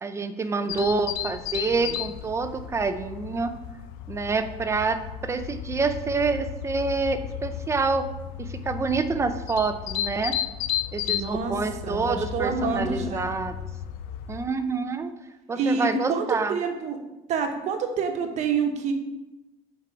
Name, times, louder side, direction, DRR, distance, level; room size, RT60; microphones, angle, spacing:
voice 1, 0.0-3.5 4.1-8.1 8.4-10.4 10.9-13.5 14.3-15.1 15.5-16.5, right 4 dB, 20° right, 9 dB, 0.4 m, -27 dB
sound 1, 0.7-14.5, left 10 dB, 80° left, 0.5 m, -34 dB
voice 2, 11.1-11.5 11.8-13.3 15.5-17.0 17.3-18.9, right 5 dB, 50° right, 5 dB, 1.1 m, -27 dB
5.7 x 4.7 x 6.1 m, 1.0 s
cardioid pair, 140°, 15 cm